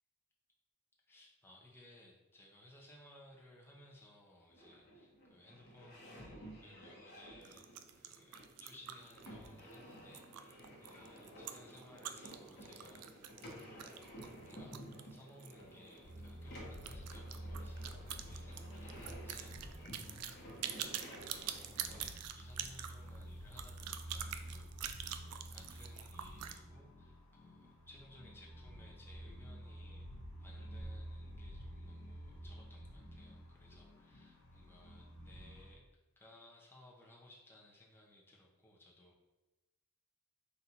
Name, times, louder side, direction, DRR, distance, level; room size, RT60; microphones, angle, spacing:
voice 1, 1.1-14.0 14.4-14.8 15.1-35.9 36.2-39.2, left 1 dB, 10° left, -3 dB, 0.7 m, -61 dB
sound 1, 4.5-22.1, equal, 45° left, 1.1 m, -54 dB
sound 2, 7.4-15.6 15.9-16.0 16.3-16.4 16.7-26.6, right 10 dB, 85° right, 0.3 m, -46 dB
sound 3, 16.0-35.7, equal, 75° left, 1.2 m, -50 dB
3.9 x 2.5 x 4.3 m, 1.1 s
head